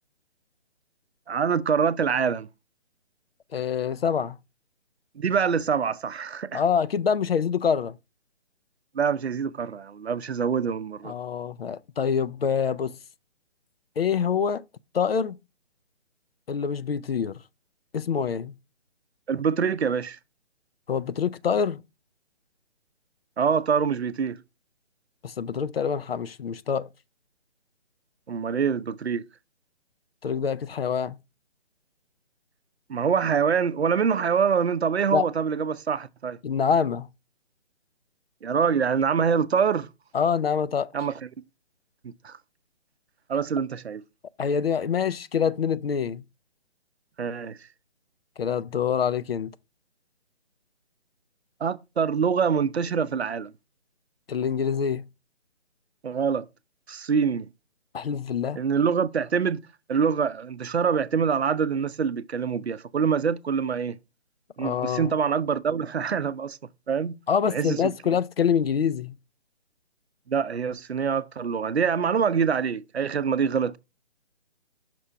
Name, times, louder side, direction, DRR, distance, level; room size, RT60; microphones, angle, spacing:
voice 1, 1.3-2.5 5.2-6.6 8.9-11.1 19.3-20.2 23.4-24.4 28.3-29.2 32.9-36.4 38.4-39.9 40.9-41.2 42.0-42.4 43.3-44.0 47.2-47.6 51.6-53.5 56.0-56.5 56.9-57.5 58.6-64.0 64.6-66.6 66.9-67.2 67.5-67.9 70.3-73.8, right 6 dB, 70° right, 0.6 m, -25 dB
voice 2, 3.5-4.4 6.5-8.0 11.0-13.0 14.0-14.6 14.9-15.4 16.5-17.4 17.9-18.5 20.9-21.8 25.2-26.9 30.2-31.2 35.1-35.2 36.4-37.1 40.1-40.9 44.4-46.2 48.4-49.5 54.3-55.1 57.9-58.6 64.6-65.1 67.3-69.2, left 7 dB, 60° left, 0.5 m, -25 dB
6.0 x 4.3 x 4.8 m
figure-of-eight pair, 140°, 34 cm